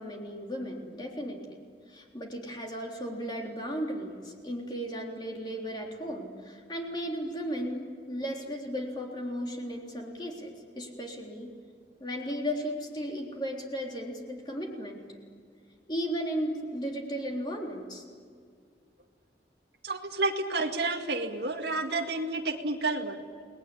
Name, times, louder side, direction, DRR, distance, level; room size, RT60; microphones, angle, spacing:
voice 1, 0.0-1.6 1.9-11.5 12.0-15.0 15.9-18.0, equal, 25° left, 0 dB, 3.7 m, -35 dB
voice 2, 19.8-23.2, right 3 dB, 70° right, 3 dB, 2.0 m, -30 dB
29.5 x 20.0 x 10.0 m, 2.1 s
head